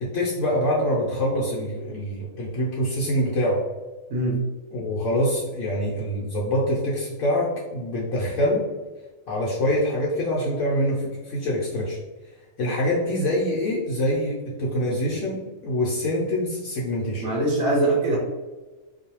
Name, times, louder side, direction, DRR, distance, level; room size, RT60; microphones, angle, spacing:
voice 1, 0.0-3.6 4.7-8.6 9.3-12.0 12.6-17.2, left 1 dB, 70° left, -4 dB, 0.9 m, -25 dB
voice 2, 17.2-18.2, right 2 dB, 80° right, -4 dB, 1.1 m, -22 dB
2.5 x 2.2 x 2.9 m, 1.2 s
omnidirectional pair, 1.5 m